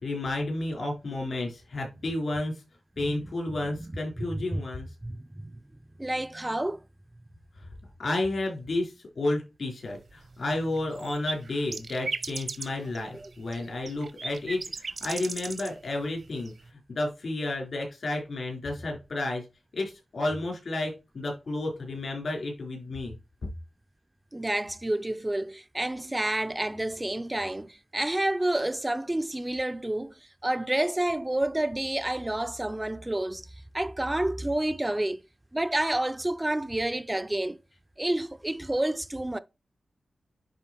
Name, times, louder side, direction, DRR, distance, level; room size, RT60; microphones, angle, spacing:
voice 1, 0.0-2.5 3.0-4.9 8.0-16.5 16.9-19.4 19.7-23.2, left 2 dB, 70° left, 4.5 m, -31 dB
voice 2, 3.0-3.3 3.8-4.6 5.0-5.6 6.0-6.8 13.1-13.3 24.3-30.1 30.4-33.4 33.7-35.2 35.5-37.6 38.0-39.4, right 1 dB, 15° right, 0.5 m, -29 dB
sound 1, 9.8-15.7 16.1-16.7, right 4 dB, 65° right, 1.0 m, -37 dB
10.5 x 3.8 x 4.5 m
wide cardioid pair, 85°, 0 cm